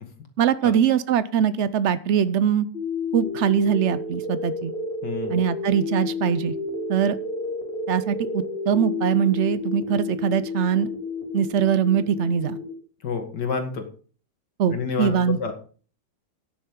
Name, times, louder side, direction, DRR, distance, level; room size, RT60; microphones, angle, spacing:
voice 1, 0.4-2.7 3.1-4.7 5.3-6.5 6.9-7.2 7.9-10.9 11.3-12.6 14.6-15.5, right 8 dB, 80° right, 15 dB, 0.6 m, -22 dB
sound 1, 2.7-12.7, left 3 dB, 30° left, 2.6 m, -31 dB
voice 2, 5.0-5.3 13.0-13.9 14.7-15.5, left 5 dB, 65° left, 5 dB, 2.7 m, -28 dB
13.0 x 10.0 x 3.7 m, 0.40 s
omnidirectional pair, 2.0 m